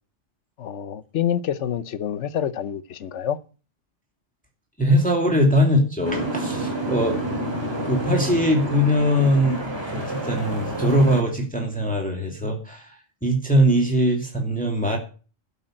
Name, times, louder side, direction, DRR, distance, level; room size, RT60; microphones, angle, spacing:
voice 1, 0.6-3.4, left 9 dB, 75° left, 1.1 m, -27 dB
voice 2, 4.8-7.4 7.8-15.0, equal, 5° left, 2.5 m, -21 dB
Boat Water vehicle, 6.0-11.2, right 1 dB, 20° right, 2.9 m, -29 dB
11.5 x 5.7 x 8.7 m
omnidirectional pair, 1.2 m